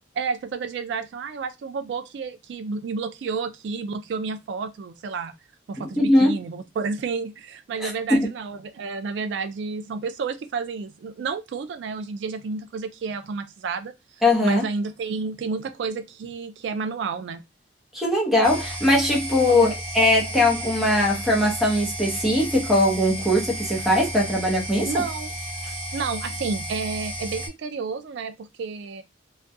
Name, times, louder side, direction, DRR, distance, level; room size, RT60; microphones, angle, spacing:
voice 1, 0.1-5.3 5.7-13.9 14.4-17.4 19.5-19.7 24.8-25.3 25.9-29.0, right 5 dB, 70° right, 0.3 m, -30 dB
voice 2, 5.8-6.3 7.8-8.3 14.2-14.7 17.9-24.9, left 1 dB, ahead, 0.7 m, -20 dB
sound 1, 18.4-27.5, right 1 dB, 30° right, 1.0 m, -33 dB
2.3 x 2.2 x 2.6 m
head